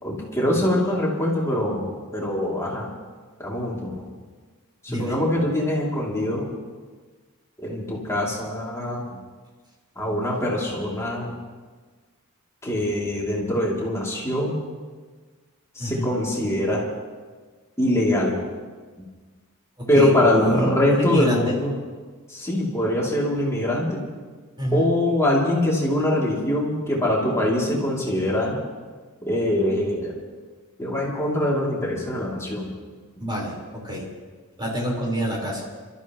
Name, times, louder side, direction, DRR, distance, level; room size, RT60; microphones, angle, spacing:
voice 1, 0.0-2.9 3.4-3.9 4.8-6.5 7.6-9.2 9.9-11.3 12.6-14.6 15.7-16.8 17.8-18.4 19.9-21.8 22.3-24.0 24.7-28.6 29.2-30.2 30.8-32.7, left 1 dB, 15° left, -5 dB, 3.0 m, -23 dB
voice 2, 19.8-21.6 24.6-24.9 33.2-34.1 34.6-35.6, equal, 20° right, -4 dB, 4.6 m, -27 dB
28.5 x 13.5 x 3.1 m, 1.4 s
head